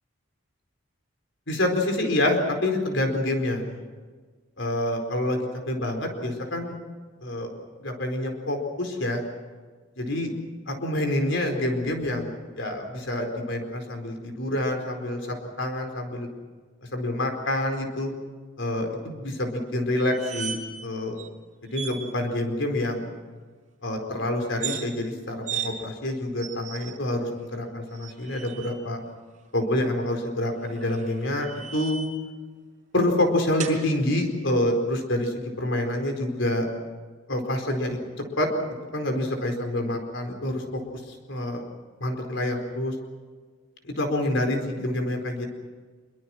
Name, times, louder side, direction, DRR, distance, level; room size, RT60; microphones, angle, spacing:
voice 1, 1.5-3.7 4.6-6.7 7.2-7.5 7.8-9.2 10.0-10.3 10.7-16.3 16.9-18.1 18.6-21.2 21.7-23.1 23.8-29.0 29.5-32.0 32.9-36.7 37.3-38.0 38.4-38.5 38.9-41.0 41.3-41.6 42.0-42.9 43.8-45.5, left 1 dB, 65° left, 4 dB, 4.6 m, -27 dB
sound 1, 20.0-20.9 21.2-21.3 21.7-22.0 24.5-24.8 25.4-25.7 26.4-27.0 27.9-28.7 30.6-32.2 33.6-33.8, right 8 dB, 35° right, 4.6 m, -36 dB
25.5 x 24.0 x 6.1 m, 1.5 s
head